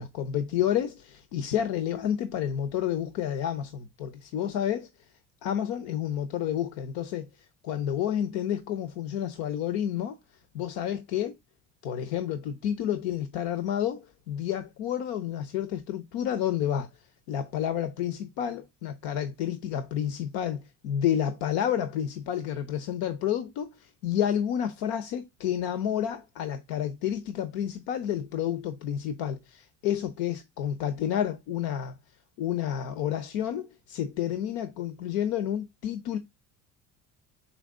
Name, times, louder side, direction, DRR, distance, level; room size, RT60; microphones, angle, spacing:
voice 1, 0.0-4.9 5.4-10.2 10.5-11.4 11.8-16.9 17.3-32.0 32.4-36.2, left 10 dB, 85° left, 1.0 m, -30 dB
6.1 x 5.0 x 3.7 m
cardioid pair, 105°, 35 cm